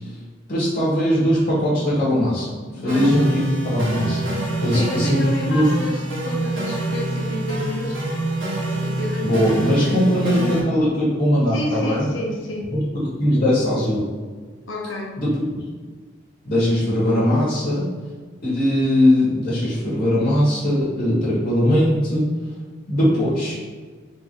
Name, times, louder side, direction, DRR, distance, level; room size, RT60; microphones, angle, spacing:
voice 1, 0.5-4.3 4.6-5.7 9.2-12.1 12.7-14.1 15.2-15.4 16.4-17.9 18.4-22.3 22.9-23.6, equal, 40° left, -9 dB, 1.5 m, -20 dB
voice 2, 2.8-3.1 4.6-8.0 8.8-10.0 11.5-12.7 14.7-15.1, left 1 dB, 80° left, -1 dB, 0.9 m, -30 dB
sound 1, 2.9-10.6, right 1 dB, 85° right, 1.4 m, -25 dB
3.7 x 2.7 x 4.6 m, 1.5 s
head